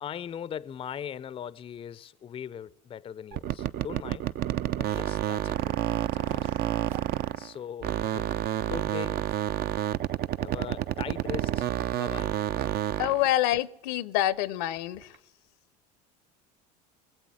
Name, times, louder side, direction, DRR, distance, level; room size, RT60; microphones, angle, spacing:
voice 1, 0.0-4.3 4.8-6.7 7.4-8.3 8.7-9.3 10.4-12.4, left 8 dB, 25° left, 0.5 m, -40 dB
sound 1, 3.3-7.5 7.8-13.2, right 12 dB, 50° right, 0.5 m, -29 dB
Zipper (clothing), 4.8-5.2 6.0-7.1 7.5-7.6 7.9-8.4 8.6-9.8 10.5-11.1 11.4-13.5 14.1-15.2, right 7 dB, 70° right, 1.8 m, -54 dB
voice 2, 13.0-15.2, left 13 dB, 75° left, 0.7 m, -27 dB
21.0 x 8.1 x 7.6 m
hypercardioid pair, 90°, 21 cm